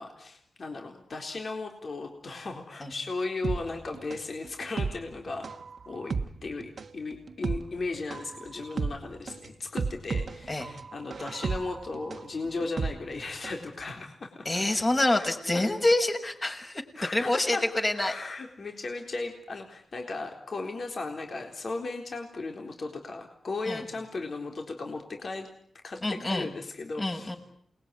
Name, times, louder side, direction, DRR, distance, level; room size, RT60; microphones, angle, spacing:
voice 1, 0.0-5.5 5.9-6.2 6.4-14.5 15.1-15.2 15.5-15.7 17.0-17.6 17.9-25.5 25.8-27.3, left 3 dB, 60° left, 3 dB, 3.9 m, -36 dB
sound 1, 3.4-13.7 13.9-14.0, right 4 dB, 65° right, 1.4 m, -34 dB
voice 2, 14.4-16.8 17.1-18.1 23.6-23.9 26.0-26.5 27.0-27.4, left 2 dB, 35° left, 4 dB, 6.5 m, -26 dB
28.5 x 21.0 x 9.7 m, 0.68 s
cardioid pair, 65°, 0 cm